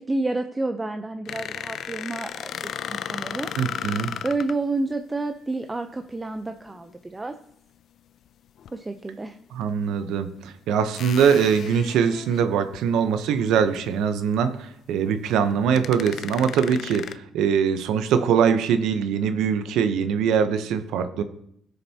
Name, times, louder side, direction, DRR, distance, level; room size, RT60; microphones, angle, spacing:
voice 1, 0.0-3.5 4.2-7.3 8.7-9.4, right 2 dB, 20° right, 7 dB, 0.6 m, -29 dB
sound 1, 1.2-4.6 6.7-6.9 8.6-8.7 9.6-9.7 10.9-12.8 13.3-13.4 13.7-13.8 15.3-15.4 15.8-17.1, left 9 dB, 70° left, 0.4 m, -35 dB
voice 2, 3.6-4.1 9.5-21.2, right 7 dB, 90° right, 10 dB, 0.8 m, -22 dB
17.5 x 6.7 x 2.8 m, 0.71 s
cardioid pair, 90°, 0 cm